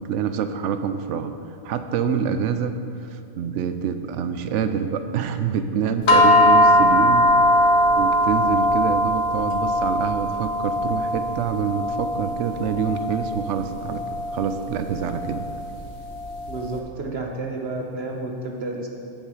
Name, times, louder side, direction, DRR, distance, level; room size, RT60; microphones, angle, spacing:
voice 1, 0.0-1.3 1.6-15.5, right 7 dB, 80° right, 9 dB, 0.9 m, -26 dB
sound 1, 6.1-16.6, left 1 dB, 65° left, 1.3 m, -20 dB
voice 2, 16.5-18.9, right 2 dB, 60° right, 0 dB, 1.2 m, -30 dB
16.5 x 5.5 x 4.9 m, 2.4 s
omnidirectional pair, 1.2 m